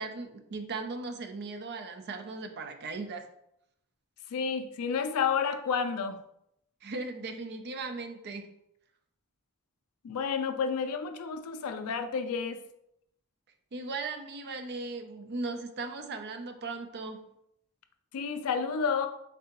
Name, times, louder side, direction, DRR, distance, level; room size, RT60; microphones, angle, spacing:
voice 1, 0.0-3.2 6.8-8.5 13.7-17.2, right 3 dB, 50° right, 6 dB, 0.4 m, -37 dB
voice 2, 4.3-6.2 10.0-12.6 18.1-19.1, left 6 dB, 75° left, 9 dB, 0.4 m, -30 dB
3.7 x 3.3 x 2.9 m, 0.78 s
head